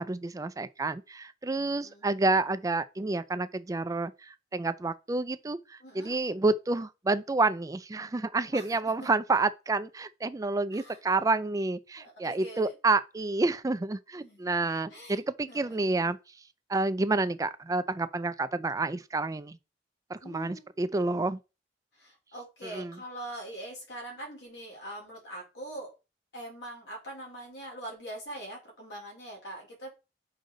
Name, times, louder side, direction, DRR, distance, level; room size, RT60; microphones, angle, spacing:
voice 1, 0.0-16.2 16.7-19.6 20.1-21.4 22.7-22.9, right 3 dB, 20° right, 0.4 m, -29 dB
voice 2, 1.7-2.1 5.8-6.2 8.5-9.1 10.7-11.0 12.0-12.8 14.2-14.4 14.9-15.8 20.2-20.7 21.9-25.9 26.3-29.9, right 1 dB, 80° left, 3.9 m, -43 dB
6.5 x 5.0 x 3.8 m
head